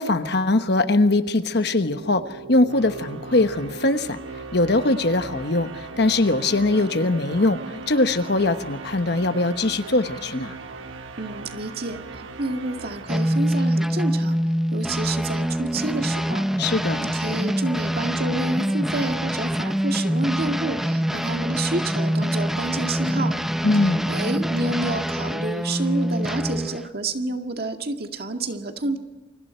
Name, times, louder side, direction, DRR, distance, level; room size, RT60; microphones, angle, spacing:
voice 1, 0.0-2.2 2.5-4.2 4.5-5.7 6.0-7.6 7.9-10.6 16.6-17.0 23.6-24.0, left 2 dB, 55° left, 9 dB, 1.1 m, -21 dB
sound 1, 1.1-14.2, right 4 dB, 85° right, 1.5 m, -39 dB
voice 2, 11.2-14.4 14.7-23.3 24.1-29.0, right 2 dB, 50° right, 4 dB, 2.0 m, -29 dB
sound 2, 13.1-26.9, equal, ahead, 0.7 m, -25 dB
29.0 x 25.0 x 4.5 m, 1.2 s
head